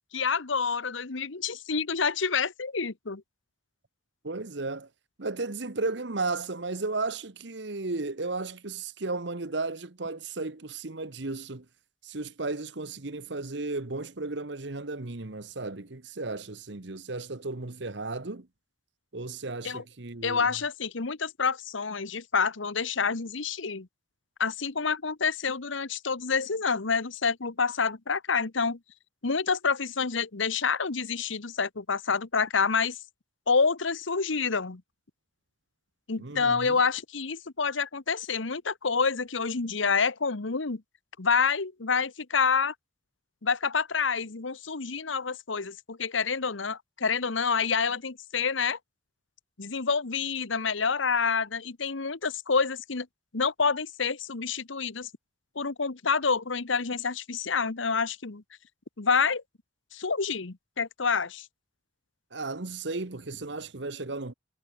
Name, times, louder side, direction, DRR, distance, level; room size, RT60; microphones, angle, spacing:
voice 1, 0.1-3.2 19.6-19.8 20.2-23.9 24.4-28.8 29.2-33.0 33.5-34.8 36.1-40.8 41.2-42.7 43.4-48.8 49.6-53.1 53.3-55.1 55.5-58.4 59.0-59.4 59.9-61.5, left 5 dB, 80° left, 1.2 m, -28 dB
voice 2, 4.2-4.9 5.2-11.6 12.0-18.5 19.1-20.5 36.2-36.8 62.3-64.3, right 3 dB, 60° right, 1.2 m, -34 dB
head